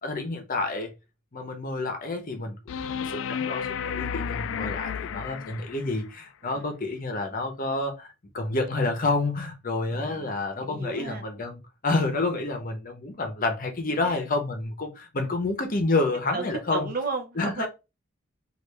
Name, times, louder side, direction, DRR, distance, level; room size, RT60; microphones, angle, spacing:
voice 1, 0.0-0.9 1.3-16.9 17.4-17.7, left 2 dB, 45° left, 0.8 m, -29 dB
sound 1, 2.7-6.0 8.7-8.8, left 7 dB, 65° left, 0.3 m, -32 dB
voice 2, 9.9-10.3 10.6-11.2 14.0-14.2 16.3-17.7, right 4 dB, 45° right, 0.6 m, -34 dB
3.3 x 2.5 x 3.3 m
head